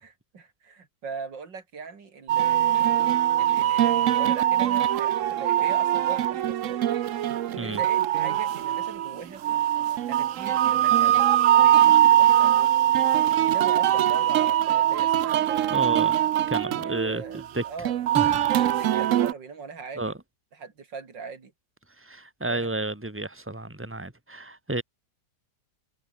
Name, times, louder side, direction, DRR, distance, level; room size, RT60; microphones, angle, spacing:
voice 1, 0.3-3.0 3.4-6.8 7.6-9.4 10.1-11.2 11.5-13.0 13.4-15.9 16.8-18.2 18.6-20.1 20.6-21.5 22.5-22.7, right 5 dB, 85° right, 3.4 m, -40 dB
sound 1, 2.3-19.3, right 12 dB, 60° right, 0.8 m, -22 dB
voice 2, 15.7-16.2 16.5-17.6 18.1-18.5 20.0-20.2 22.0-24.8, right 2 dB, 5° right, 2.8 m, -31 dB
omnidirectional pair, 1.9 m